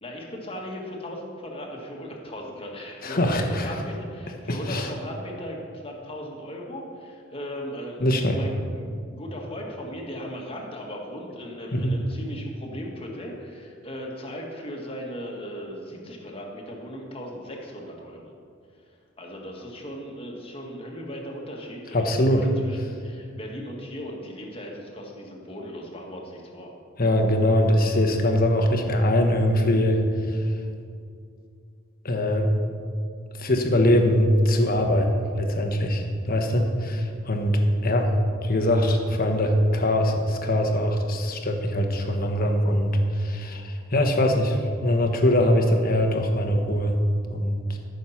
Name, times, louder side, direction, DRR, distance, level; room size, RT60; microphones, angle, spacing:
voice 1, 0.0-18.3 19.2-26.7 47.7-47.8, equal, 30° left, -1 dB, 1.7 m, -37 dB
voice 2, 3.0-3.7 4.5-4.9 8.0-8.4 11.7-12.0 21.9-22.5 27.0-30.0 30.3-30.4 32.0-32.5 33.4-44.6 44.8-47.0 47.3-47.8, left 1 dB, 45° left, 4 dB, 1.2 m, -22 dB
14.0 x 6.6 x 5.8 m, 2.3 s
head